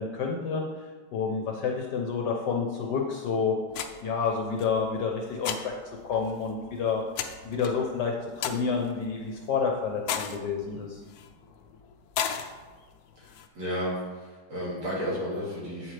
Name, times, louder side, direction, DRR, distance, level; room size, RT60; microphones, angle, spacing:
voice 1, 0.0-3.5 4.0-5.7 6.0-7.0 7.4-11.0, left 5 dB, 65° left, 1 dB, 1.2 m, -29 dB
sound 1, 3.7-13.5, left 8 dB, 85° left, 0.8 m, -38 dB
voice 2, 13.2-15.9, equal, 65° right, -7 dB, 2.9 m, -33 dB
8.0 x 7.5 x 3.3 m, 1.4 s
omnidirectional pair, 2.2 m